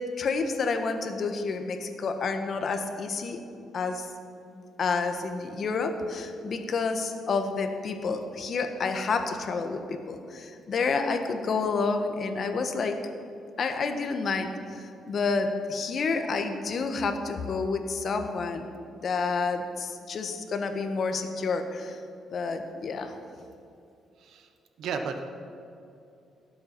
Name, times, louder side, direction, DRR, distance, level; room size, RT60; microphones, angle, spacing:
voice 1, 0.0-3.4 3.7-4.1 4.5-13.0 13.6-18.7 19.0-22.0 22.3-23.2, left 4 dB, 55° left, 7 dB, 1.3 m, -29 dB
voice 2, 24.8-25.3, right 5 dB, 75° right, 6 dB, 1.2 m, -33 dB
17.0 x 7.9 x 6.0 m, 2.6 s
cardioid pair, 90°, 0 cm